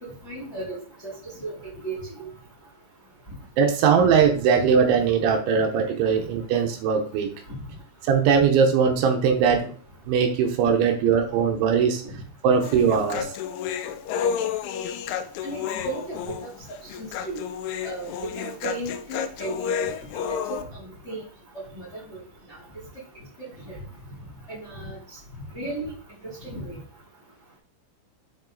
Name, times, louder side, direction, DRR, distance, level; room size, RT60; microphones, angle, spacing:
voice 1, 0.0-1.1 1.4-1.5 1.8-2.0 7.5-7.6 12.1-12.2 14.2-14.3 15.4-16.5 16.9-17.4 17.8-19.7 20.3-21.2 21.5-22.2 23.7-23.8 24.5-25.0 25.5-25.9 26.4-26.7, right 2 dB, 20° left, -7 dB, 2.3 m, -35 dB
voice 2, 3.6-7.3 8.0-9.8 10.1-12.0 12.4-13.3, right 6 dB, 80° right, 4 dB, 3.2 m, -20 dB
Human voice, 12.6-20.6, left 8 dB, 85° left, 2.9 m, -31 dB
7.5 x 5.2 x 3.9 m, 0.41 s
omnidirectional pair, 5.6 m